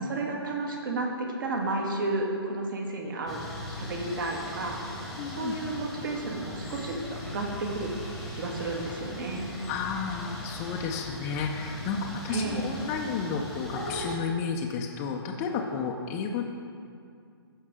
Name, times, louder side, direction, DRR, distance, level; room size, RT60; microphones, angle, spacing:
voice 1, 0.0-3.4 3.7-4.8 5.4-7.9 8.3-9.5 12.3-12.7, right 2 dB, 50° right, 0 dB, 1.7 m, -32 dB
sound 1, 3.3-14.2, left 1 dB, ahead, 1.1 m, -39 dB
voice 2, 5.2-5.5 9.7-16.4, left 5 dB, 20° left, 0 dB, 0.5 m, -32 dB
15.5 x 5.4 x 3.7 m, 2.3 s
figure-of-eight pair, 140°, 14 cm